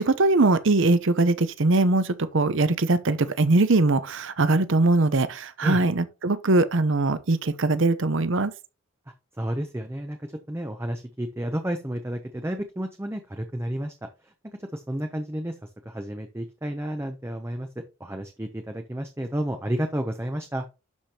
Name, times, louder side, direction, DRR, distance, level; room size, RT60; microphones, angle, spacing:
voice 1, 0.0-8.5, right 2 dB, 60° right, 0.7 m, -21 dB
voice 2, 9.4-13.9 14.2-14.3 14.7-17.7 18.0-20.6, right 1 dB, 10° right, 0.6 m, -31 dB
12.0 x 5.0 x 2.9 m
head